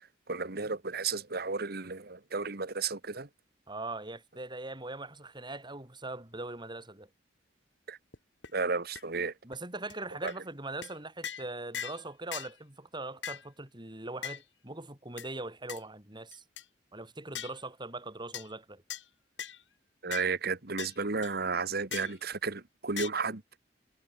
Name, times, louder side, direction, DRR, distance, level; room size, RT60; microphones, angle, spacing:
voice 1, 0.3-3.3 7.9-8.0 8.5-9.3 10.2-10.3 20.0-23.4, right 4 dB, 60° right, 1.7 m, -33 dB
voice 2, 3.7-7.1 9.4-16.4 16.9-18.8, right 2 dB, 25° right, 5.2 m, -41 dB
sound 1, 8.1-8.2 8.4-8.5 9.0-9.1 9.5-9.6 9.9-10.0 10.3-10.4 10.8-10.9 11.2-11.5 11.7-12.0 12.3-12.5 13.2-13.5 14.2-14.4 15.2-15.3 15.7-15.8 16.3-16.6 17.3-17.6 18.3-18.5 18.9-19.0 19.4-19.6 20.1-20.3 20.8-20.9 21.2-21.3 21.9-22.2 23.0-23.1, left 8 dB, 85° left, 7.2 m, -39 dB
head